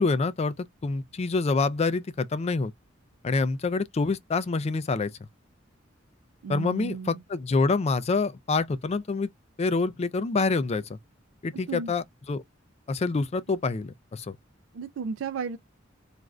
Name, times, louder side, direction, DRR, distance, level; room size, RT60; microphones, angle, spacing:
voice 1, 0.0-2.7 3.2-5.1 6.5-9.3 9.6-11.0 11.4-12.4 12.9-14.4, left 3 dB, 35° left, 0.4 m, -26 dB
voice 2, 6.4-7.2 11.7-11.9 14.7-15.6, right 5 dB, 85° right, 0.4 m, -34 dB
2.5 x 2.4 x 3.1 m
head